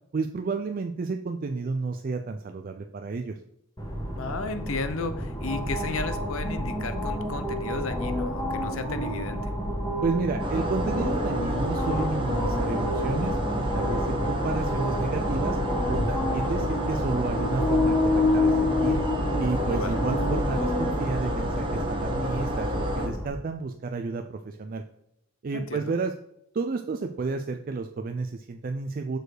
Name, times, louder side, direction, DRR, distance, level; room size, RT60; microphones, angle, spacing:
voice 1, 0.1-3.4 10.0-15.6 15.9-19.0 19.4-24.8 25.4-26.1 26.5-29.2, right 4 dB, 40° right, 6 dB, 0.3 m, -31 dB
sound 1, 3.8-23.3, left 1 dB, 15° left, 1.3 m, -29 dB
voice 2, 4.1-9.5 19.7-20.0 25.5-25.9, left 3 dB, 65° left, 10 dB, 0.7 m, -34 dB
sound 2, 10.4-23.1, equal, 20° right, 1.1 m, -30 dB
6.4 x 4.6 x 4.8 m, 0.80 s
head